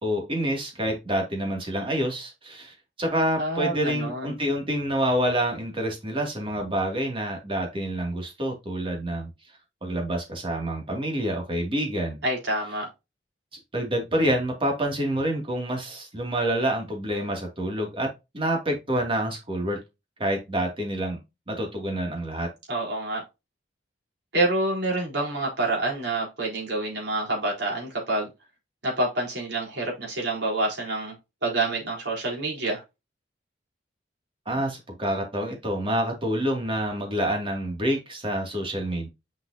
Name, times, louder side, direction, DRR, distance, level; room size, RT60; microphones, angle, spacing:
voice 1, 0.0-9.3 9.8-12.2 13.7-19.8 20.2-21.2 21.5-22.5 34.5-39.1, right 1 dB, 30° right, 2.5 m, -27 dB
voice 2, 3.4-4.4 12.2-12.9 22.7-23.2 24.3-28.3 28.8-31.1 31.4-32.8, right 2 dB, 70° right, 3.9 m, -27 dB
6.4 x 5.6 x 2.8 m
head